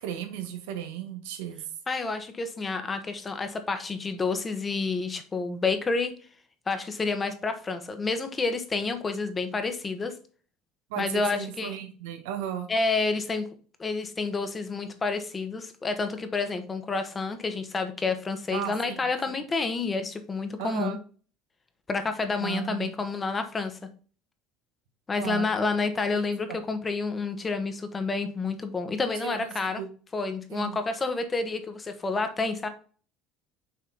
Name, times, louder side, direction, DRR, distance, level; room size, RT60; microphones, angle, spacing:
voice 1, 0.0-1.6 10.9-12.7 18.5-19.0 20.6-21.0 22.4-22.9 25.2-25.5 26.1-26.2 26.5-26.6 29.2-29.9 30.5-30.8, right 9 dB, 85° right, 6 dB, 1.3 m, -35 dB
voice 2, 1.9-6.1 6.7-10.1 11.0-11.7 12.7-13.4 13.8-21.0 21.9-23.8 25.1-29.8 30.1-32.7, left 4 dB, 25° left, 8 dB, 1.1 m, -29 dB
6.5 x 4.2 x 4.0 m, 0.40 s
supercardioid pair, 95°, 0 cm